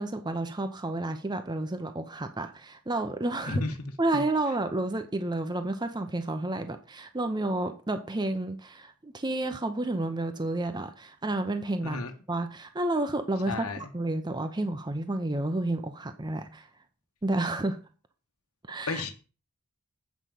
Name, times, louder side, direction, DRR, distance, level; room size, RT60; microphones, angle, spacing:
voice 1, 0.0-3.6 4.0-12.0 12.3-16.7 17.2-17.8 18.7-19.0, right 2 dB, 20° right, 0.7 m, -30 dB
voice 2, 13.5-13.8 18.9-19.2, left 3 dB, 80° left, 1.3 m, -31 dB
8.3 x 5.3 x 7.6 m
head